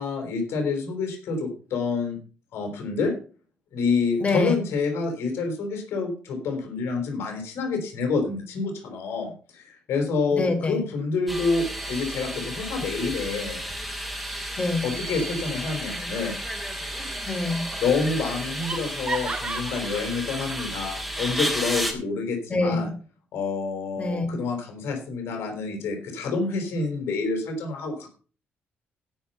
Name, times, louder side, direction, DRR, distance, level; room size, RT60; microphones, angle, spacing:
voice 1, 0.0-2.2 2.5-3.1 3.7-13.6 14.8-16.3 17.8-22.9 23.3-28.1, left 4 dB, 75° left, 4 dB, 4.5 m, -28 dB
voice 2, 4.2-4.6 10.3-10.8 14.6-14.9 17.3-17.6 22.5-22.8 24.0-24.3, left 2 dB, 30° left, 4 dB, 4.1 m, -25 dB
sound 1, 11.3-21.9, equal, ahead, 3.7 m, -32 dB
Laughter, 17.0-17.5 17.8-17.9 18.3-20.8, right 3 dB, 30° right, 3.3 m, -35 dB
17.0 x 5.8 x 5.6 m, 0.39 s
cardioid pair, 90°, 4 cm